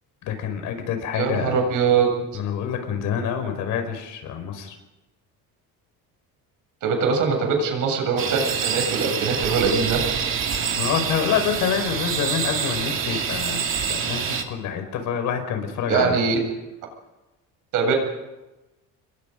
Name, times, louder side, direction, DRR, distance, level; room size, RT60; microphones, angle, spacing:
voice 1, 0.2-1.6 2.3-4.8 10.7-13.6 13.8-16.2, left 7 dB, 60° left, 6 dB, 5.5 m, -27 dB
voice 2, 1.2-2.1 6.8-10.0 15.9-16.4 17.7-17.9, right 5 dB, 65° right, 3 dB, 7.7 m, -22 dB
sound 1, 8.2-14.4, right 7 dB, 35° right, 2.7 m, -26 dB
29.0 x 22.5 x 5.3 m, 1.0 s
cardioid pair, 165°, 33 cm